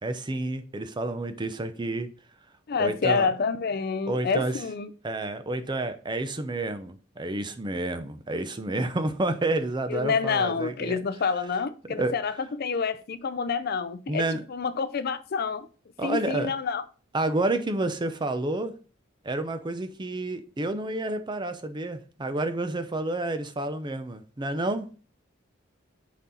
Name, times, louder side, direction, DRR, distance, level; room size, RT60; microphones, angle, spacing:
voice 1, 0.0-2.1 2.8-3.3 4.1-4.6 5.0-11.0 11.9-12.2 14.1-14.4 16.0-16.5 17.1-18.7 19.2-25.1, right 2 dB, 25° right, 0.6 m, -29 dB
voice 2, 2.7-4.9 9.9-15.7 16.0-16.8, left 5 dB, 55° left, 0.5 m, -28 dB
5.9 x 4.2 x 3.9 m
head